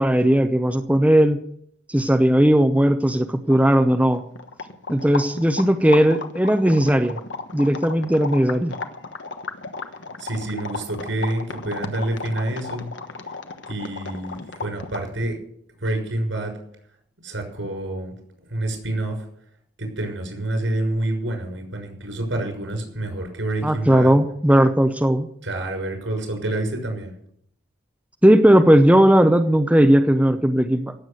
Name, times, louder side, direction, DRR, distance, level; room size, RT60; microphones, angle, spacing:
voice 1, 0.0-1.4 1.9-4.2 4.9-7.2 7.5-8.8 23.6-25.3 28.2-30.9, equal, 5° right, 7 dB, 0.7 m, -17 dB
sound 1, 3.2-3.3 3.4-15.2, left 3 dB, 70° left, 1.3 m, -34 dB
voice 2, 10.2-12.9 13.7-15.4 15.8-16.5 17.2-18.1 18.5-19.2 19.8-24.1 25.4-27.1, right 1 dB, 80° right, 3 dB, 6.3 m, -27 dB
17.0 x 8.0 x 6.6 m, 0.67 s
head